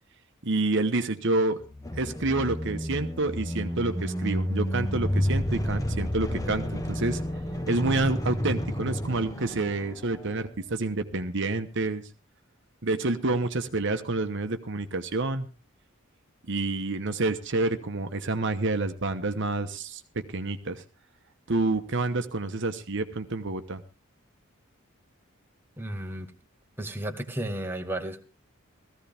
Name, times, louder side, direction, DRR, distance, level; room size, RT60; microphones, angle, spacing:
voice 1, 0.4-1.6 2.0-7.2 7.7-12.0 12.8-15.5 16.5-20.8 21.5-23.8, right 2 dB, 60° right, 1.1 m, -28 dB
sound 1, 1.6-10.4, equal, 15° left, 1.2 m, -31 dB
voice 2, 25.8-26.3 26.8-28.2, right 1 dB, 10° right, 1.3 m, -33 dB
16.0 x 15.0 x 3.5 m
head